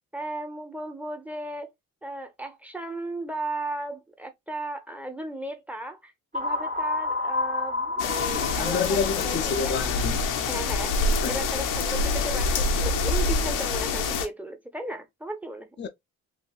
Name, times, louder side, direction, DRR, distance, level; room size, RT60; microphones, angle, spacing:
voice 1, 0.1-1.7 2.0-9.7 10.5-10.9 11.3-15.7, right 1 dB, 5° right, 0.8 m, -35 dB
sound 1, 6.3-10.2, left 2 dB, 25° right, 1.0 m, -30 dB
sound 2, 8.0-14.3, left 3 dB, 90° left, 0.8 m, -26 dB
voice 2, 8.5-10.2 11.0-11.4 15.8-15.9, left 5 dB, 35° left, 0.4 m, -29 dB
3.4 x 2.6 x 2.4 m
cardioid pair, 90°, 30 cm